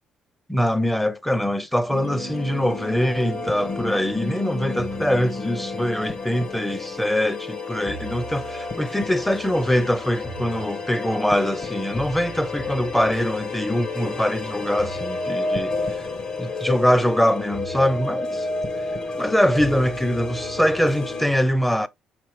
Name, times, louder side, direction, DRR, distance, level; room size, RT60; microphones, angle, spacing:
voice 1, 0.5-16.1 16.4-18.5 19.2-21.9, equal, 5° left, 0.5 m, -23 dB
sound 1, 1.9-21.3, left 3 dB, 45° left, 1.2 m, -31 dB
5.3 x 3.3 x 3.1 m
supercardioid pair, 80°, 2 cm